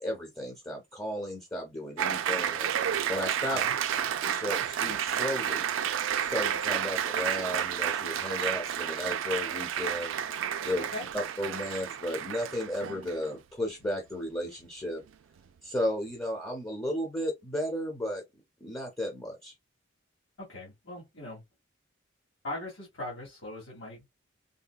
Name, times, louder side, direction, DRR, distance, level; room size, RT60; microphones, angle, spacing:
voice 1, 0.0-2.7 3.1-3.6 4.3-5.7 6.2-10.1 10.6-10.8 11.1-15.0 15.6-18.2 18.6-19.5, left 1 dB, 15° left, 0.7 m, -34 dB
Applause, 2.0-13.3, right 9 dB, 75° right, 0.3 m, -31 dB
voice 2, 20.4-21.4 22.4-24.1, left 1 dB, 80° left, 1.5 m, -40 dB
3.8 x 2.2 x 2.3 m
head